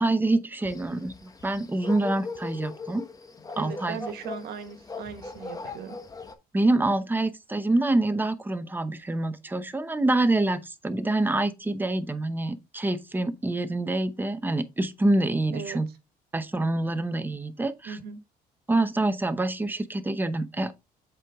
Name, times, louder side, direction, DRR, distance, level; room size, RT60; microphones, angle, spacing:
voice 1, 0.0-3.0 3.6-4.0 6.5-15.9 16.3-18.0 18.7-20.7, right 2 dB, 10° right, 0.8 m, -26 dB
sound 1, 0.6-6.3, left 3 dB, 20° left, 1.0 m, -39 dB
voice 2, 3.6-6.0 15.5-15.8 17.8-18.2, right 7 dB, 70° right, 1.5 m, -38 dB
7.5 x 4.7 x 3.6 m
cardioid pair, 110°, 17 cm